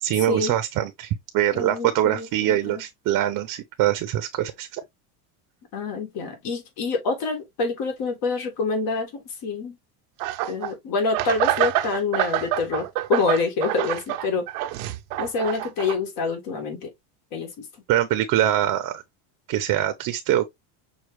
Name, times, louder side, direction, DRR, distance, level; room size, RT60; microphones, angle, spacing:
voice 1, 0.0-4.8 17.9-19.0 19.5-20.5, right 12 dB, 50° right, 0.7 m, -23 dB
voice 2, 1.5-2.8 5.7-9.8 10.5-14.4 15.2-16.9 17.3-17.7, left 4 dB, 55° left, 2.1 m, -27 dB
sound 1, 10.2-10.7 11.1-16.0, right 14 dB, 85° right, 0.8 m, -26 dB
6.2 x 2.4 x 3.2 m
cardioid pair, 135°, 42 cm